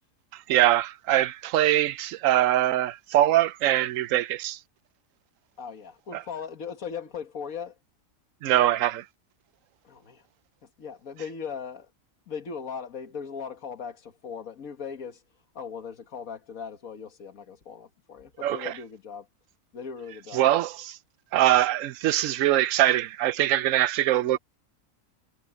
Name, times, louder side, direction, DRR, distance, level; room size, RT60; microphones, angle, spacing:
voice 1, 0.3-4.6 6.1-6.2 8.4-9.0 18.4-18.7 20.3-21.0 21.3-24.4, right 13 dB, 75° right, 1.0 m, -23 dB
voice 2, 5.6-7.8 9.8-10.2 10.8-11.9 12.3-15.2 15.6-19.3 19.7-20.6 24.2-24.4, left 6 dB, 90° left, 1.9 m, -38 dB
omnidirectional pair, 1.4 m